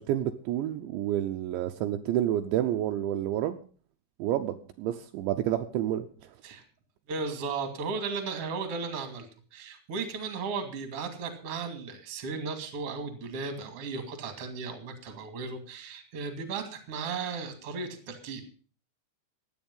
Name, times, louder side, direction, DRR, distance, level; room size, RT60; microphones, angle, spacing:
voice 1, 0.0-3.6 4.2-6.3, right 12 dB, 80° right, 7 dB, 3.0 m, -29 dB
voice 2, 7.1-18.4, right 4 dB, 40° right, 8 dB, 2.7 m, -35 dB
16.0 x 11.0 x 5.5 m, 0.40 s
omnidirectional pair, 5.5 m